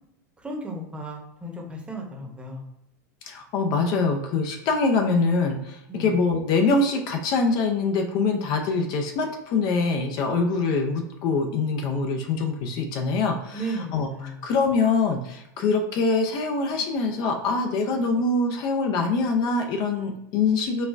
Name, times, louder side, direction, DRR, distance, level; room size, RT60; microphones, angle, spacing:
voice 1, 0.4-2.6 5.9-6.2 13.5-14.4, right 1 dB, 10° right, 0 dB, 0.9 m, -34 dB
voice 2, 3.3-14.1 14.4-20.9, left 4 dB, 50° left, 3 dB, 0.5 m, -24 dB
4.0 x 2.2 x 2.5 m, 0.85 s
hypercardioid pair, 105°, 9 cm